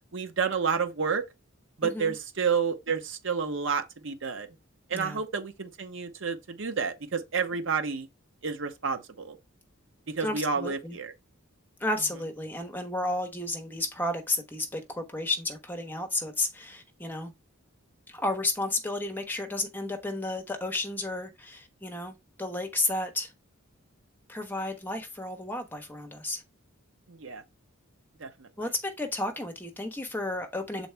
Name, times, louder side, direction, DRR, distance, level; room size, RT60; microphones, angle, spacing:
voice 1, 0.1-1.2 1.8-4.5 4.9-8.1 8.4-9.4 10.2-11.1 27.1-27.4 28.2-28.7, right 5 dB, 60° right, 0.8 m, -30 dB
voice 2, 1.8-2.1 4.9-5.2 10.2-11.0 11.8-17.3 18.1-23.3 24.3-26.4 28.6-30.9, left 2 dB, 10° left, 1.0 m, -32 dB
7.0 x 4.1 x 3.4 m
head